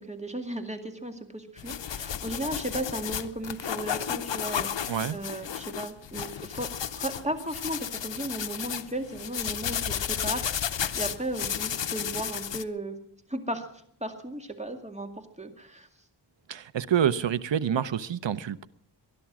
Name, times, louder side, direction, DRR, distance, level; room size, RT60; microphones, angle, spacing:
voice 1, 0.0-13.0 13.3-13.7 14.0-15.1 15.4-15.9, right 1 dB, 15° right, 2.2 m, -35 dB
sound 1, 1.6-12.6, left 9 dB, 75° left, 0.8 m, -33 dB
voice 2, 16.5-18.7, right 9 dB, 80° right, 0.8 m, -27 dB
20.0 x 11.5 x 6.1 m
wide cardioid pair, 65°, 44 cm